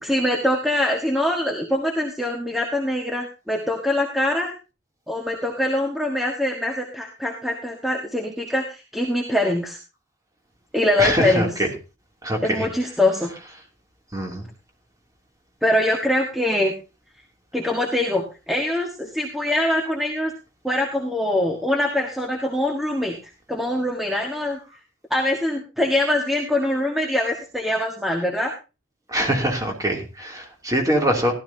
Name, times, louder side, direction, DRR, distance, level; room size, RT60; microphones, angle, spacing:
voice 1, 0.0-4.5 5.1-9.8 10.7-11.5 12.4-13.3 15.6-16.7 17.5-20.3 20.6-23.2 23.5-24.6 25.1-28.5, left 1 dB, ahead, 0 dB, 1.6 m, -23 dB
voice 2, 11.0-11.7 12.2-12.7 14.1-14.4 29.1-31.3, right 1 dB, 15° right, 1 dB, 2.9 m, -23 dB
16.0 x 13.0 x 2.8 m, 0.30 s
head